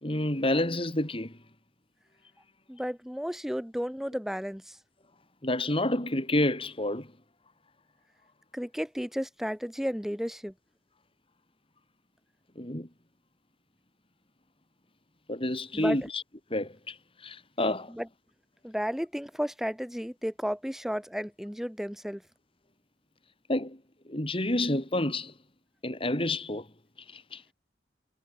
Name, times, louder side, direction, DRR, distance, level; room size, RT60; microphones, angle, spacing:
voice 1, 0.0-1.3 5.4-7.1 12.6-12.9 15.3-16.2 16.5-17.9 23.5-23.8 24.1-25.3 25.8-26.7 27.1-27.4, left 1 dB, 30° left, 4.0 m, -29 dB
voice 2, 2.7-4.8 8.5-10.5 15.7-16.0 17.9-18.1 18.6-22.2, equal, ahead, 6.2 m, -33 dB
head